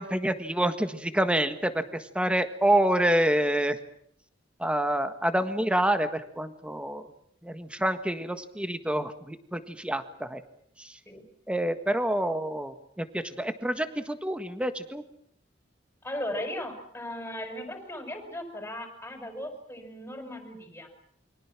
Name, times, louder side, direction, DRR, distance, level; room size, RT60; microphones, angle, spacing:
voice 1, 0.0-3.8 4.6-7.1 7.4-10.4 10.8-11.0 11.5-15.0, right 1 dB, 5° right, 9 dB, 1.6 m, -27 dB
voice 2, 16.0-20.9, left 1 dB, 10° left, 5 dB, 5.3 m, -37 dB
28.5 x 23.5 x 6.1 m, 0.69 s
head